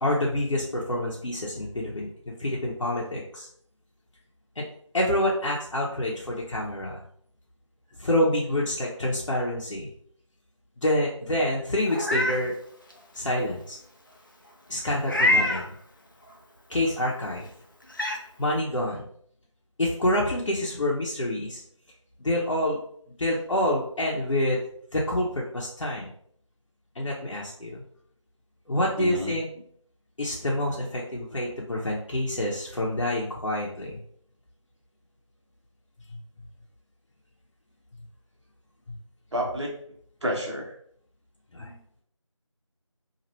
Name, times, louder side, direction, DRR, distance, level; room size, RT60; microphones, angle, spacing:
voice 1, 0.0-3.5 4.6-4.7 4.9-7.0 8.0-9.9 10.8-12.5 13.1-13.8 14.7-15.6 16.7-17.5 18.4-19.0 19.8-21.6 22.2-22.8 23.2-24.6 24.9-26.1 26.9-27.8 28.7-29.5 30.2-34.0 36.1-36.2 38.9-39.0 41.5-41.8, left 1 dB, 70° left, -4 dB, 0.7 m, -27 dB
Meow, 11.9-12.4 12.9-13.0 15.0-15.7 17.2-17.3 17.9-18.2, left 1 dB, 40° left, 0.4 m, -24 dB
voice 2, 29.0-29.3 39.3-39.7 40.2-40.7, equal, 60° right, -2 dB, 1.1 m, -30 dB
3.0 x 2.5 x 2.8 m, 0.64 s
figure-of-eight pair, 170°, 16 cm